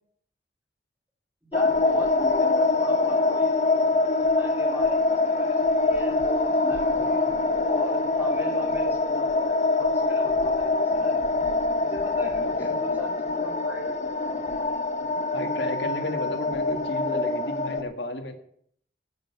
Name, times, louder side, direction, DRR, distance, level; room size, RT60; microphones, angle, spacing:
voice 1, 1.4-7.2 7.6-11.3 11.8-14.7, equal, 10° right, -1 dB, 3.1 m, -40 dB
sound 1, 1.5-17.8, left 3 dB, 40° left, 0.7 m, -24 dB
voice 2, 15.3-18.3, left 1 dB, 80° left, 6 dB, 1.7 m, -33 dB
11.5 x 6.1 x 8.5 m, 0.65 s
head